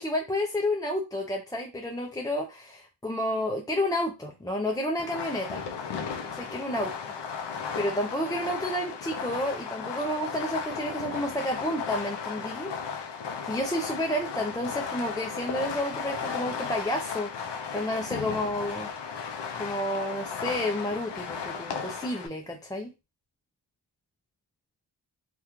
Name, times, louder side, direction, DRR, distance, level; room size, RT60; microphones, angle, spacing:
voice 1, 0.0-5.6 6.3-6.9 7.8-12.7 13.4-18.9 19.6-22.9, left 1 dB, 10° left, 1 dB, 0.3 m, -30 dB
Fireworks, 5.0-22.3, left 6 dB, 70° left, 0.5 m, -35 dB
3.6 x 2.2 x 2.9 m, 0.26 s
wide cardioid pair, 170°, 43 cm